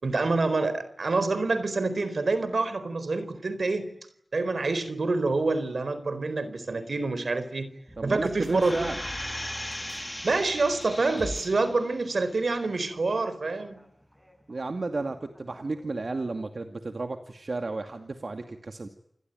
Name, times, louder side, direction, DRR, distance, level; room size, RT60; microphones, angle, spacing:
voice 1, 0.0-3.9 4.3-7.7 8.0-8.9 10.2-13.8, right 3 dB, 85° right, 13 dB, 4.4 m, -27 dB
sound 1, 7.9-16.3, equal, 5° right, 7.6 m, -46 dB
voice 2, 8.0-9.0 14.5-18.9, right 3 dB, 70° right, 6 dB, 2.5 m, -33 dB
sound 2, 8.5-11.9 12.4-12.5, left 1 dB, 15° left, 3.0 m, -37 dB
29.0 x 21.0 x 9.3 m, 0.75 s
wide cardioid pair, 50°, 0 cm